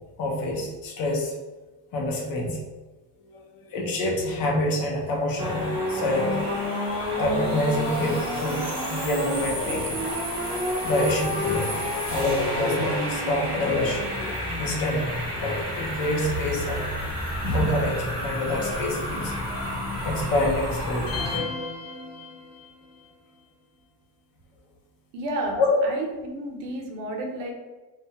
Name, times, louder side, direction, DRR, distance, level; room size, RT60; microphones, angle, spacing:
voice 1, 0.2-1.3 1.9-2.6 3.3-6.4 7.2-10.0 10.8-11.7 12.1-14.0 14.6-16.8 17.4-19.3 20.0-21.2 25.5-25.8, left 1 dB, 50° left, -1 dB, 0.6 m, -26 dB
sound 1, 5.4-21.4, left 1 dB, 15° right, 0.5 m, -29 dB
sound 2, 21.1-22.9, left 4 dB, 75° left, 0.9 m, -34 dB
voice 2, 25.1-27.5, right 1 dB, 75° right, 0 dB, 0.7 m, -32 dB
2.2 x 2.1 x 2.7 m, 1.2 s
cardioid pair, 165°, 43 cm